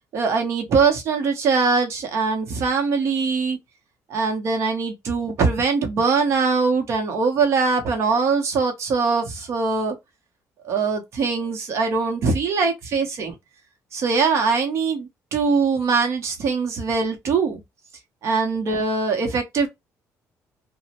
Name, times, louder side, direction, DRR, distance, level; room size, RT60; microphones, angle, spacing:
voice 1, 0.1-3.6 4.1-10.0 10.6-13.4 13.9-17.6 18.2-19.7, right 4 dB, 50° right, 0.7 m, -22 dB
2.9 x 2.0 x 2.8 m
cardioid pair, 160°, 6 cm